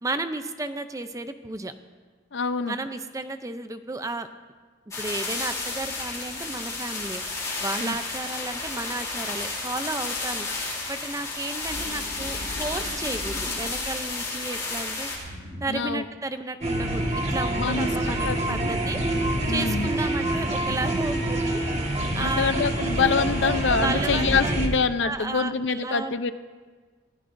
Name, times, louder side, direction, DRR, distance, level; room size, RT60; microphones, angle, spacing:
voice 1, 0.0-1.7 2.6-4.3 5.0-15.1 15.6-19.0 19.5-21.6 22.1-22.6 23.7-24.7 25.0-26.3, right 2 dB, 15° right, 9 dB, 0.5 m, -33 dB
voice 2, 2.3-2.8 7.8-7.9 15.7-16.0 17.6-17.9 18.2-18.6 19.5-19.9 22.2-26.3, left 5 dB, 70° left, 11 dB, 0.6 m, -25 dB
sound 1, 4.9-15.2, left 3 dB, 15° left, 3.1 m, -32 dB
sound 2, 11.6-14.1 15.0-16.0, equal, 75° right, 5.1 m, -39 dB
sound 3, 16.6-24.7, right 1 dB, 35° right, 1.6 m, -26 dB
26.0 x 15.5 x 2.6 m, 1.5 s
head